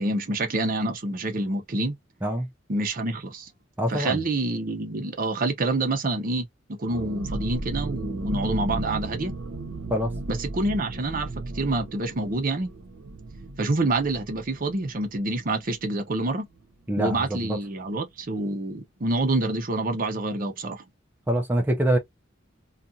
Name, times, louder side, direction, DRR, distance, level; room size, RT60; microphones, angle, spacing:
voice 1, 0.0-1.9 2.7-3.5 3.9-9.3 10.3-12.7 13.6-16.5 17.0-20.8, right 2 dB, 45° right, 0.7 m, -27 dB
voice 2, 3.8-4.2 9.9-10.1 16.9-17.6 21.3-22.0, right 1 dB, 10° right, 0.4 m, -24 dB
sound 1, 6.9-16.3 16.6-16.7 17.0-17.3, right 2 dB, 90° right, 0.7 m, -35 dB
2.5 x 2.3 x 2.6 m
head